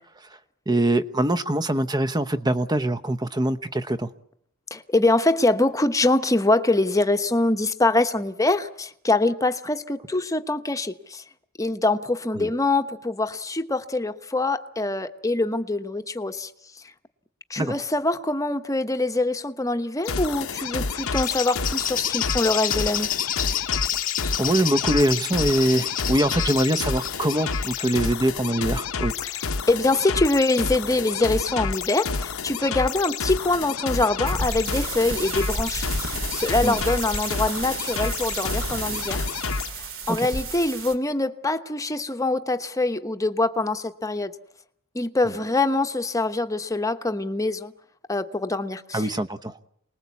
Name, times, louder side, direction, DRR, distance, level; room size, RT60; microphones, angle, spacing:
voice 1, 0.7-4.1 12.3-12.5 17.6-17.8 24.4-29.1 36.6-36.8 40.1-40.3 48.9-49.6, right 1 dB, 20° right, 1.0 m, -23 dB
voice 2, 4.7-11.2 11.6-16.5 17.5-23.1 23.9-24.0 29.2-29.3 29.7-39.2 39.7-44.3 44.9-47.7 48.1-49.1, left 2 dB, 15° left, 1.1 m, -24 dB
sound 1, 20.0-39.7, left 5 dB, 70° left, 1.0 m, -30 dB
Bird, 21.0-27.9, left 10 dB, 40° left, 1.0 m, -29 dB
sound 2, 34.2-40.9, right 3 dB, 60° right, 2.8 m, -32 dB
28.5 x 20.5 x 8.4 m
head